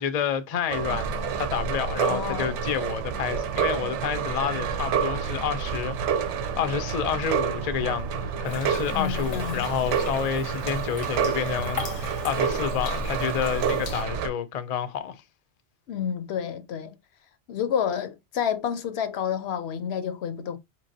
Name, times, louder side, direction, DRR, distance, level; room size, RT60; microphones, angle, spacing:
voice 1, 0.0-6.3 6.6-15.2, left 8 dB, 55° left, 0.4 m, -29 dB
sound 1, 0.7-14.3, right 6 dB, 85° right, 0.9 m, -28 dB
voice 2, 2.0-2.6 8.9-9.7 15.9-17.0 17.5-20.6, left 8 dB, 70° left, 0.8 m, -29 dB
sound 2, 8.4-14.0, left 5 dB, 90° left, 1.2 m, -39 dB
4.4 x 3.0 x 2.6 m
omnidirectional pair, 1.2 m